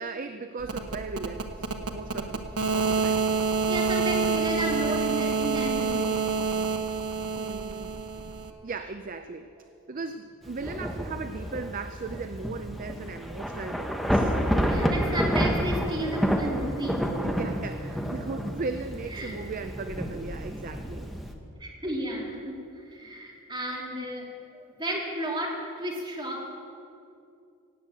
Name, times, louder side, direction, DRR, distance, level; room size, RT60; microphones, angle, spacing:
voice 1, 0.0-2.4 2.7-3.2 7.3-7.9 8.6-9.5 9.9-14.4 17.2-21.1, right 4 dB, 35° right, 8 dB, 0.5 m, -37 dB
sound 1, 0.6-8.5, right 5 dB, 85° right, 1.1 m, -28 dB
voice 2, 3.7-6.2 14.7-17.1 19.1-19.3 21.6-24.3 24.5-26.5, right 1 dB, 20° right, -3 dB, 2.9 m, -33 dB
Thunder / Rain, 10.4-21.3, equal, ahead, 1.0 m, -29 dB
17.0 x 7.9 x 8.9 m, 2.6 s
head